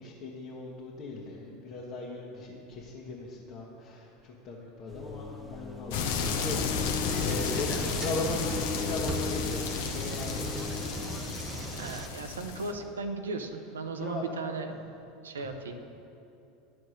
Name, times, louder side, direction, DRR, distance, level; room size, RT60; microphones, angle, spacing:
voice 1, 0.0-10.7 13.9-14.3 15.4-15.5, left 2 dB, 50° left, -5 dB, 1.3 m, -38 dB
sound 1, 4.9-10.8, left 5 dB, 5° right, 1.0 m, -39 dB
sound 2, 5.9-12.7, left 5 dB, 70° left, 0.8 m, -33 dB
sound 3, 7.1-12.1, right 4 dB, 25° right, 0.6 m, -40 dB
voice 2, 11.7-14.9 15.2-15.8, right 3 dB, 90° right, 7 dB, 0.7 m, -37 dB
11.5 x 4.3 x 6.4 m, 2.7 s
hypercardioid pair, 90°, 0 cm